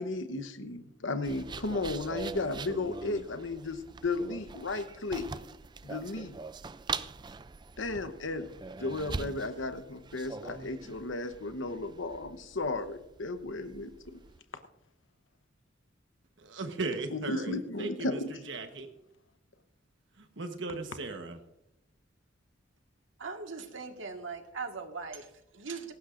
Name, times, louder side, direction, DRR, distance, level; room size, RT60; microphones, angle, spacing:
voice 1, 0.0-5.3 5.8-6.4 7.8-8.5 8.8-14.2 17.1-18.3, left 2 dB, 80° left, 9 dB, 1.0 m, -34 dB
sound 1, 1.2-14.4, right 4 dB, 25° right, 0.4 m, -43 dB
voice 2, 16.4-18.2 18.5-18.9 20.2-21.4, right 3 dB, 70° right, 6 dB, 1.2 m, -37 dB
voice 3, 23.2-25.9, right 4 dB, 90° right, 4 dB, 1.7 m, -40 dB
18.5 x 15.5 x 2.6 m, 0.85 s
head